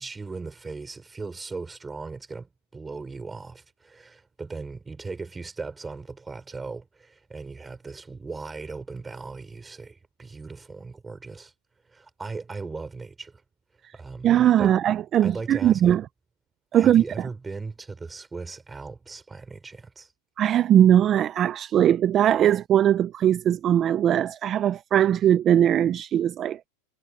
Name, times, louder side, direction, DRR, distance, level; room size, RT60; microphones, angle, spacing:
voice 1, 0.0-11.5 11.9-13.4 13.9-14.3 14.6-14.7 15.2-16.0 16.7-20.1, right 4 dB, 10° right, 4.8 m, -38 dB
voice 2, 14.2-16.0 16.7-17.0 20.4-26.7, right 10 dB, 25° right, 0.4 m, -20 dB
supercardioid pair, 150°, 0 cm